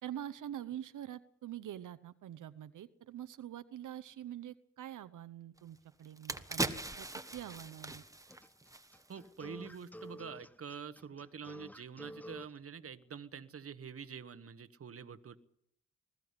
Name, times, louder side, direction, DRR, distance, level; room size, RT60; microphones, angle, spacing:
voice 1, 0.0-7.1 7.3-8.0, right 11 dB, 85° right, 13 dB, 0.8 m, -45 dB
sound 1, 5.6-5.7 6.0-9.3 9.6-9.8, right 2 dB, 10° right, 1.3 m, -40 dB
sound 2, 8.3-12.5, equal, 5° left, 0.9 m, -50 dB
voice 2, 9.1-15.4, right 6 dB, 50° right, 13 dB, 1.2 m, -46 dB
20.5 x 15.0 x 9.7 m, 0.75 s
cardioid pair, 100°, 30 cm